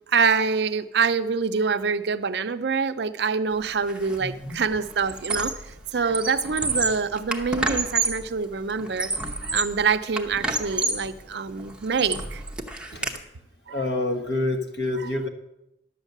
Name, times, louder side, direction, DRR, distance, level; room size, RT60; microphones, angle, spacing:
voice 1, 0.1-5.5 5.9-9.1 9.4-12.4 13.7-13.8, right 5 dB, 60° right, 10 dB, 0.5 m, -25 dB
Squeak, 3.9-4.2 4.5-5.7 6.0-8.3 8.8-9.8 10.2-11.1 11.6-13.2, right 3 dB, 5° right, 0.8 m, -29 dB
voice 2, 4.2-4.6 12.9-13.2 13.7-15.3, left 2 dB, 60° left, 5 dB, 1.4 m, -28 dB
11.5 x 7.3 x 6.6 m, 0.88 s
head